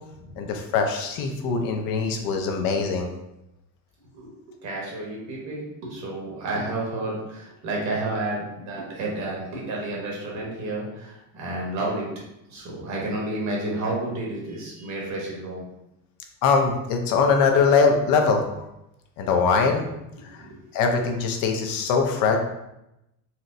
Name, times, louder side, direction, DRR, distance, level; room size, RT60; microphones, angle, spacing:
voice 1, 0.4-3.1 16.4-18.6 19.2-19.9 20.2-22.4, left 5 dB, 75° left, 4 dB, 0.6 m, -22 dB
voice 2, 4.6-12.1 12.5-15.6 20.4-20.6, right 2 dB, 55° right, -3 dB, 1.1 m, -30 dB
4.2 x 2.0 x 2.5 m, 0.88 s
cardioid pair, 140°, 35 cm